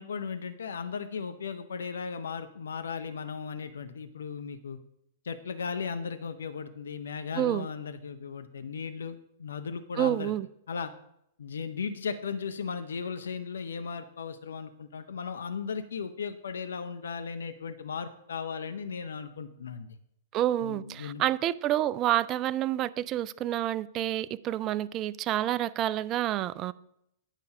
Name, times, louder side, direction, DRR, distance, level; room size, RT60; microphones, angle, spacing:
voice 1, 0.0-4.8 5.2-10.3 10.7-10.9 11.4-20.0 20.6-21.3, left 6 dB, 75° left, 0.6 m, -36 dB
voice 2, 10.0-10.5 20.3-26.7, right 13 dB, 35° right, 0.3 m, -28 dB
9.0 x 5.3 x 4.9 m
figure-of-eight pair, 105°, 0 cm